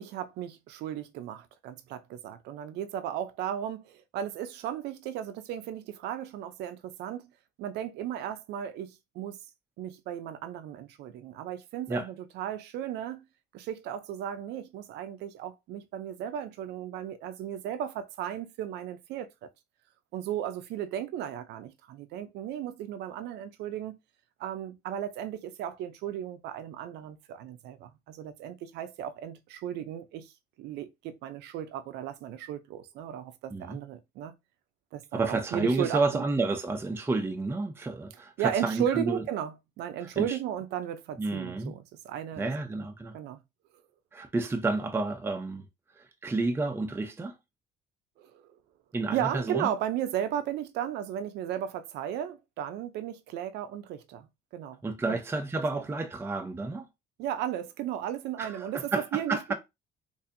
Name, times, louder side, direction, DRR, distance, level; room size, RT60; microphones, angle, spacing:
voice 1, 0.0-7.3 7.6-9.4 9.8-13.2 13.5-19.5 20.1-24.0 24.4-30.3 30.6-34.3 34.9-36.2 38.4-42.5 43.1-43.4 48.2-48.5 49.1-54.8 55.1-55.2 57.2-59.5, right 10 dB, 80° right, 0.6 m, -35 dB
voice 2, 35.1-39.2 40.0-40.4 41.2-41.7 42.4-43.2 44.1-45.6 46.0-47.4 48.9-49.7 54.8-56.9 58.4-59.5, right 3 dB, 15° right, 0.6 m, -30 dB
4.3 x 2.7 x 2.6 m
cardioid pair, 110°, 17 cm